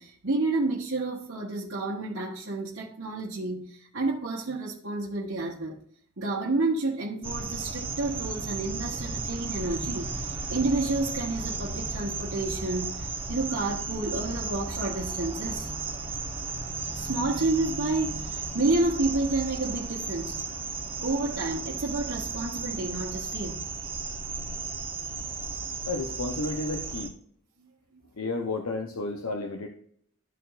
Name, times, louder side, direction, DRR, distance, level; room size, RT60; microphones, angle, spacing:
voice 1, 0.0-5.8 6.2-10.1 10.5-15.7 16.9-20.4 21.0-23.6, right 2 dB, 55° right, 1.2 m, -30 dB
sound 1, 7.2-27.1, right 4 dB, 25° right, 1.0 m, -34 dB
voice 2, 25.9-27.1 28.2-29.7, left 3 dB, 80° left, 0.8 m, -32 dB
13.0 x 4.4 x 2.5 m
head